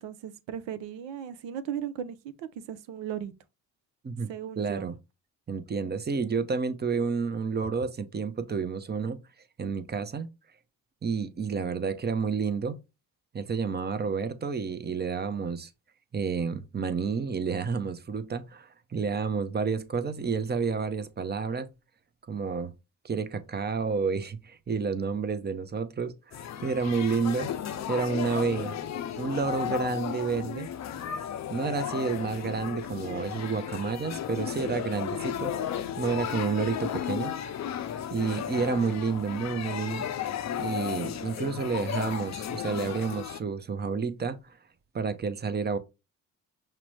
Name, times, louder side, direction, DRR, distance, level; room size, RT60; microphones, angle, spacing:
voice 1, 0.0-3.3 4.3-4.9, right 9 dB, 70° right, 0.7 m, -37 dB
voice 2, 4.6-4.9 5.5-9.2 9.6-10.3 11.0-12.8 13.3-15.7 16.1-21.7 22.3-22.7 23.0-27.5 27.9-28.7 29.2-30.7 31.5-35.5 36.0-37.3 38.1-40.1 40.6-44.6 44.9-45.8, right 5 dB, 20° right, 0.6 m, -30 dB
sound 1, 26.3-43.4, left 9 dB, 35° left, 0.6 m, -34 dB
5.8 x 2.1 x 3.1 m
hypercardioid pair, 60°, 46 cm